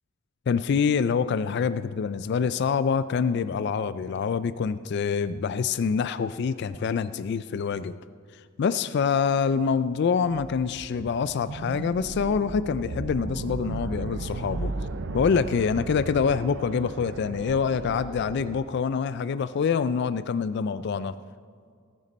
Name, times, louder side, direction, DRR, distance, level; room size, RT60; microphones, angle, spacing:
voice 1, 0.5-7.9 8.6-14.7 15.1-21.1, left 6 dB, 55° left, 14 dB, 0.3 m, -26 dB
sound 1, 10.7-18.6, right 3 dB, 60° right, 0.6 m, -35 dB
19.0 x 9.2 x 4.2 m, 2.1 s
head